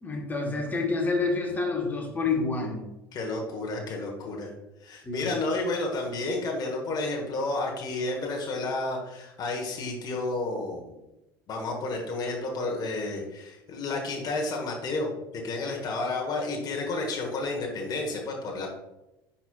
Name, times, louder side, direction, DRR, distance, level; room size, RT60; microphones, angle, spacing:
voice 1, 0.0-2.8 5.0-5.3, left 3 dB, 15° left, 0 dB, 1.6 m, -28 dB
voice 2, 3.1-4.5 4.8-11.0 11.5-18.7, left 2 dB, 35° left, 0 dB, 1.3 m, -31 dB
10.0 x 4.3 x 2.4 m, 0.94 s
figure-of-eight pair, 65°, 12 cm